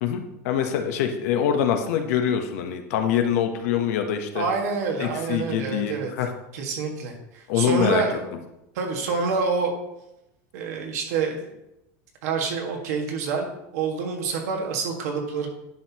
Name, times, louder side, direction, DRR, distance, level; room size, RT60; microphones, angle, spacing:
voice 1, 0.0-4.4 5.0-6.3 7.5-8.0, left 8 dB, 70° left, 6 dB, 1.0 m, -24 dB
voice 2, 4.3-6.1 6.5-8.3 8.7-9.7 10.5-11.5 12.2-15.5, right 4 dB, 75° right, 2 dB, 1.7 m, -27 dB
10.0 x 5.6 x 2.9 m, 0.87 s
supercardioid pair, 150°, 8 cm